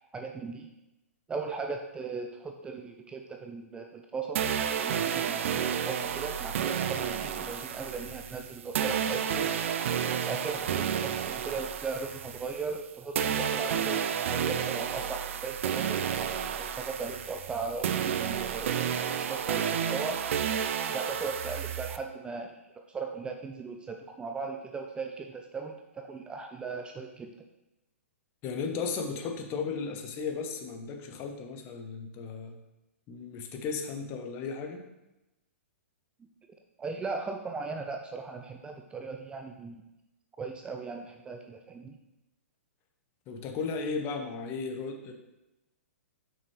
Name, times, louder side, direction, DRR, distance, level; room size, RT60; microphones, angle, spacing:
voice 1, 0.1-0.7 1.3-4.4 4.8-9.5 10.2-16.1 16.6-20.2 20.9-27.3 36.8-39.9 40.4-42.0, right 4 dB, 10° right, 4 dB, 0.4 m, -38 dB
sound 1, 4.4-12.9 13.2-22.0, right 8 dB, 60° right, 0.5 m, -31 dB
voice 2, 28.4-32.6 33.1-34.8 43.3-45.1, left 5 dB, 30° left, 4 dB, 1.0 m, -35 dB
6.9 x 5.9 x 3.3 m, 0.95 s
hypercardioid pair, 125°, 8 cm